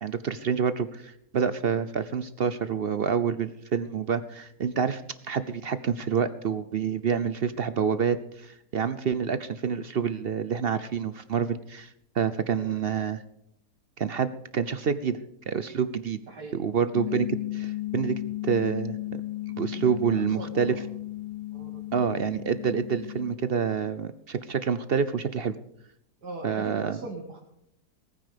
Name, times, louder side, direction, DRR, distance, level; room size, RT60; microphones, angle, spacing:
voice 1, 0.0-5.0 5.3-13.2 14.0-15.2 15.5-16.2 16.5-19.2 19.6-20.8 21.9-25.6 26.4-27.0, right 6 dB, 55° right, 14 dB, 0.7 m, -28 dB
sound 1, 16.9-23.4, left 16 dB, 80° left, 0.4 m, -35 dB
voice 2, 19.7-20.8 21.5-21.8 26.2-27.4, right 2 dB, 75° right, -2 dB, 2.7 m, -41 dB
19.5 x 9.5 x 5.2 m, 0.75 s
omnidirectional pair, 1.8 m